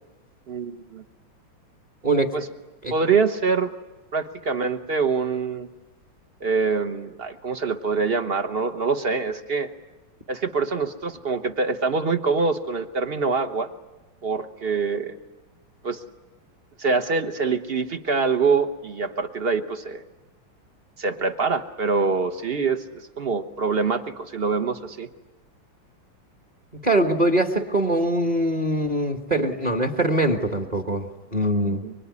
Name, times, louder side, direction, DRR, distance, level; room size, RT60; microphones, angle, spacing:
voice 1, 0.5-1.0 2.3-2.5 2.9-3.7 4.1-5.7 6.4-9.7 10.3-13.7 14.2-15.1 15.8-16.0 16.8-20.0 21.0-22.8 23.2-25.1 31.6-31.9, right 4 dB, 40° right, 9 dB, 1.0 m, -25 dB
voice 2, 26.8-31.8, right 1 dB, 25° right, 6 dB, 1.3 m, -22 dB
25.0 x 24.5 x 9.7 m, 1.1 s
omnidirectional pair, 2.3 m